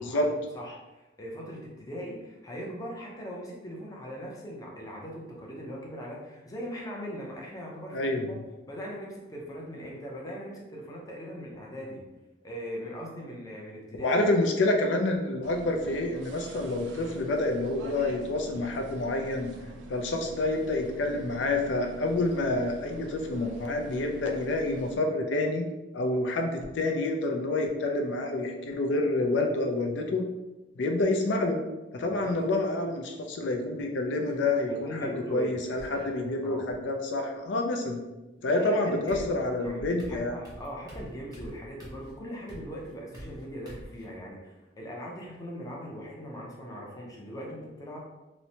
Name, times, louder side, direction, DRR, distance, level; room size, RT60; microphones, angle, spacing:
voice 1, 0.0-8.4 8.7-12.1 12.4-14.2 32.0-32.4 34.7-35.6 35.9-36.7 38.5-48.0, equal, 20° left, -2 dB, 0.5 m, -40 dB
voice 2, 7.9-8.4 14.0-19.5 19.9-25.6 25.9-30.2 30.8-31.6 31.9-35.0 35.3-38.0 38.4-40.4, left 2 dB, 80° left, 3 dB, 0.4 m, -28 dB
sound 1, 15.4-25.0, right 1 dB, 90° right, 0.3 m, -46 dB
sound 2, 32.3-32.9 34.2-34.8 35.8-36.8 38.5-38.6 39.1-44.1, equal, 20° right, 0.6 m, -46 dB
3.0 x 2.1 x 2.7 m, 1.1 s
head